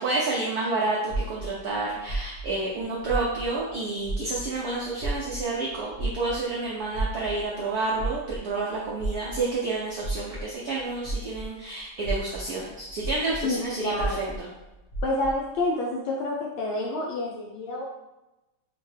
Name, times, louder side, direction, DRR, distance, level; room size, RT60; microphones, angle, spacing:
voice 1, 0.0-14.5, right 3 dB, 80° right, -4 dB, 0.8 m, -29 dB
sound 1, 1.1-3.7 4.0-11.6 11.9-15.5, right 2 dB, 50° left, 1.1 m, -33 dB
voice 2, 13.4-14.3 15.0-17.8, left 2 dB, 80° left, -2 dB, 1.4 m, -29 dB
4.4 x 2.2 x 3.2 m, 0.98 s
omnidirectional pair, 2.3 m